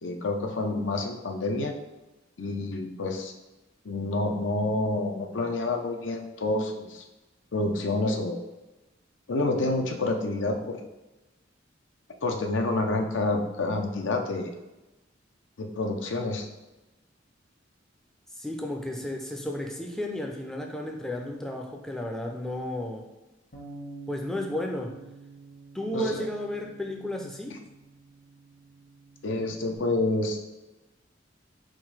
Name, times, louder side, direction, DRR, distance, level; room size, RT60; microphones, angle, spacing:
voice 1, 0.0-1.7 2.4-3.3 3.8-7.0 7.5-8.4 9.3-10.8 12.2-14.5 15.6-16.5 25.9-26.0 29.2-30.4, left 2 dB, 80° left, 4 dB, 0.6 m, -28 dB
voice 2, 18.4-23.1 24.1-25.0 25.7-27.6, left 1 dB, 5° left, 1 dB, 0.4 m, -33 dB
Bass guitar, 23.5-29.8, right 3 dB, 60° left, 1.3 m, -48 dB
3.8 x 2.6 x 4.7 m, 1.1 s
head